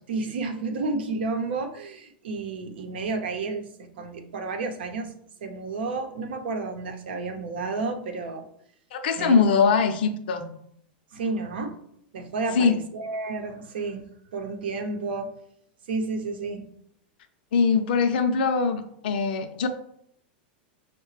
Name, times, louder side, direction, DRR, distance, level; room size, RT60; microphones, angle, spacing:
voice 1, 0.1-5.1 5.4-8.4 9.2-9.5 11.1-11.7 12.1-14.0 14.3-15.3 15.9-16.7, right 3 dB, 85° right, 5 dB, 0.7 m, -31 dB
voice 2, 8.9-10.4 12.5-12.8 17.5-19.7, left 5 dB, 70° left, 7 dB, 0.6 m, -22 dB
5.6 x 2.2 x 3.1 m, 0.69 s
supercardioid pair, 140°, 5 cm